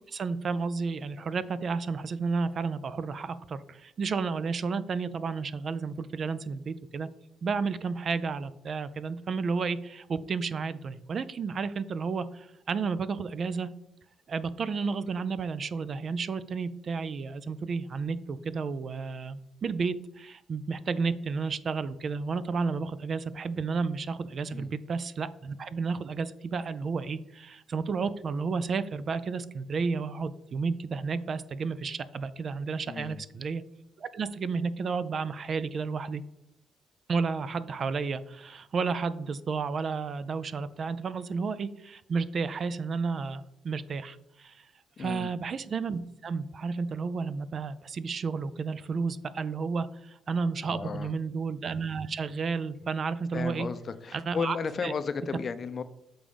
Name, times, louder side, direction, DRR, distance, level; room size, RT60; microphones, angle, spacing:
voice 1, 0.1-7.1 7.4-13.7 14.3-33.6 34.0-36.2 37.1-44.6 45.0-53.7 54.1-54.6 54.8-54.9, right 5 dB, 50° right, 15 dB, 0.4 m, -32 dB
voice 2, 32.9-33.2 45.0-45.3 50.6-51.1 53.3-55.8, left 5 dB, 45° left, 12 dB, 0.5 m, -34 dB
6.9 x 3.7 x 5.1 m, 0.83 s
cardioid pair, 90°, 0 cm